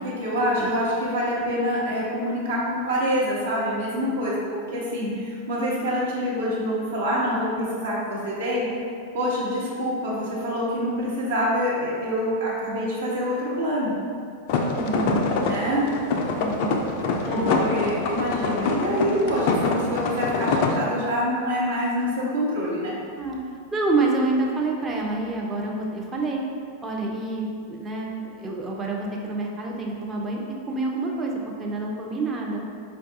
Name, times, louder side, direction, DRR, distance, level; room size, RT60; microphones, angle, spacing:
voice 1, 0.0-4.4 4.7-8.7 9.1-13.9 15.5-15.8 17.3-22.9, equal, 60° right, -6 dB, 0.8 m, -26 dB
sound 1, 14.5-20.7, left 3 dB, 50° left, 0.3 m, -25 dB
voice 2, 14.7-15.2 16.3-16.9 17.2-17.5 23.2-23.4 23.7-26.4 26.8-30.4 30.7-32.6, right 2 dB, 20° right, -1 dB, 0.5 m, -27 dB
4.4 x 2.3 x 2.7 m, 2.3 s
figure-of-eight pair, 90°, 0 cm